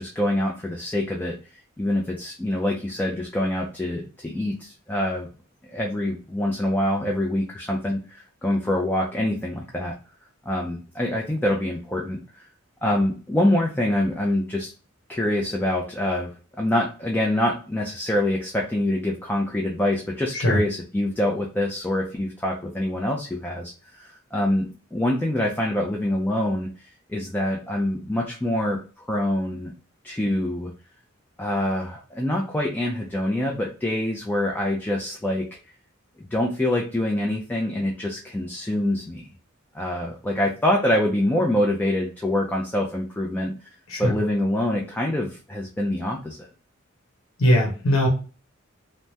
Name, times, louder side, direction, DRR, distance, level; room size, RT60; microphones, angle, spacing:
voice 1, 0.0-1.4 1.8-5.3 5.7-9.9 10.5-12.2 12.8-14.7 15.1-16.3 16.6-26.7 27.1-28.8 29.1-29.7 30.0-30.7 31.4-35.5 36.3-39.3 39.7-43.5 44.0-46.5, left 1 dB, 10° left, -1 dB, 0.4 m, -25 dB
voice 2, 47.4-48.1, equal, 80° left, 0 dB, 0.9 m, -20 dB
3.3 x 2.0 x 2.7 m, 0.35 s
head